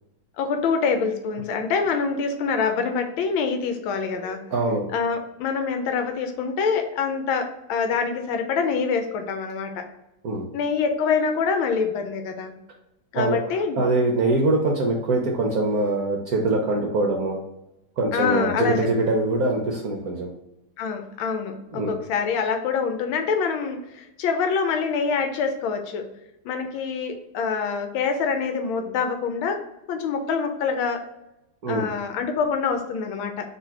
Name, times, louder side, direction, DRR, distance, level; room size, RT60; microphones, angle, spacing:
voice 1, 0.4-9.8 10.5-12.5 13.1-13.9 18.1-18.9 20.8-26.1 26.4-31.0 31.7-33.6, left 5 dB, 85° left, 6 dB, 1.4 m, -25 dB
voice 2, 4.5-4.9 10.2-10.5 13.1-13.4 13.8-17.4 18.0-20.3 21.7-22.0 31.6-31.9, right 2 dB, 70° right, 0 dB, 0.9 m, -23 dB
4.0 x 2.7 x 4.5 m, 0.89 s
omnidirectional pair, 2.2 m